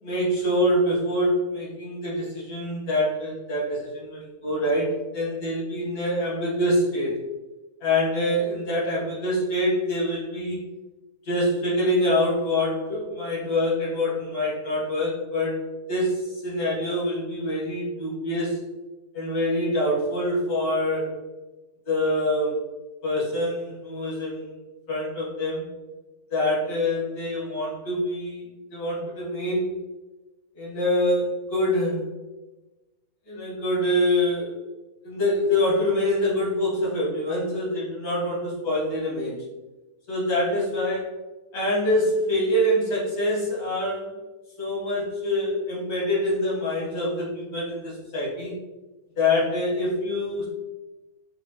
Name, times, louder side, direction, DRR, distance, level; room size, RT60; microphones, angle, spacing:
voice 1, 0.0-7.2 7.8-10.6 11.2-15.6 15.9-18.6 19.1-21.2 21.9-22.6 23.0-24.5 24.9-25.7 26.3-29.7 30.5-32.1 33.3-34.6 35.0-39.4 40.1-41.1 41.5-44.1 44.6-48.5 49.2-50.5, left 1 dB, 80° left, -7 dB, 2.2 m, -25 dB
5.2 x 2.7 x 3.0 m, 1.1 s
omnidirectional pair, 1.6 m